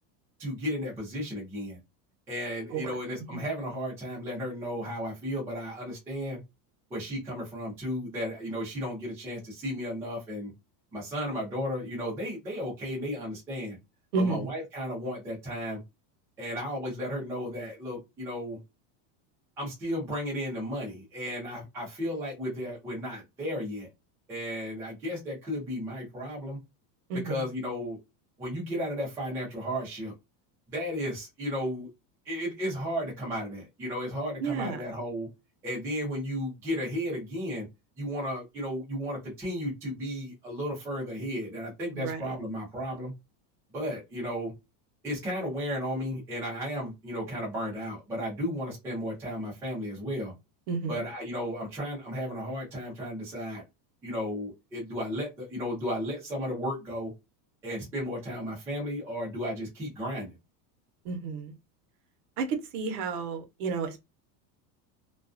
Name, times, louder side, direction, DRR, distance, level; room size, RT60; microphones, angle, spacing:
voice 1, 0.4-1.8 2.3-6.4 6.9-10.5 10.9-13.8 14.2-15.8 16.4-18.6 19.6-23.9 24.3-26.6 27.2-28.0 28.4-30.1 30.7-31.9 32.2-35.3 35.6-37.7 38.0-43.1 43.7-44.5 45.0-50.3 50.9-53.6 54.0-57.1 57.6-60.3, equal, 5° right, 0.4 m, -34 dB
voice 2, 14.1-14.5 27.1-27.4 34.4-34.8 41.9-42.3 50.7-51.0 61.0-61.5 62.4-64.0, right 4 dB, 65° right, 0.8 m, -31 dB
2.4 x 2.2 x 2.4 m
supercardioid pair, 170°, 49 cm